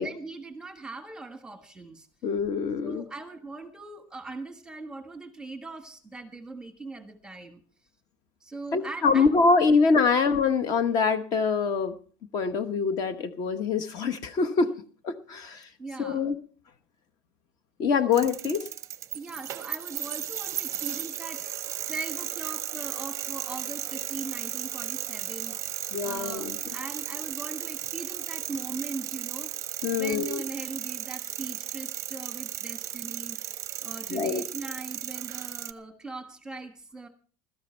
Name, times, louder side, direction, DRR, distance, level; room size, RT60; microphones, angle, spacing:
voice 1, 0.0-2.1 2.8-7.6 8.4-9.6 15.8-16.3 19.1-25.6 26.0-29.5 29.9-33.4 33.8-37.1, right 3 dB, 5° right, 8 dB, 1.4 m, -40 dB
voice 2, 2.2-3.0 8.7-11.9 12.3-14.7 15.0-15.7 16.0-16.4 17.8-18.7 25.9-26.6 29.8-30.4 34.1-34.4, left 5 dB, 35° left, 10 dB, 1.1 m, -24 dB
sound 1, 18.1-35.7, right 11 dB, 30° right, 0.7 m, -35 dB
16.0 x 13.0 x 4.4 m, 0.42 s
cardioid pair, 165°, 11 cm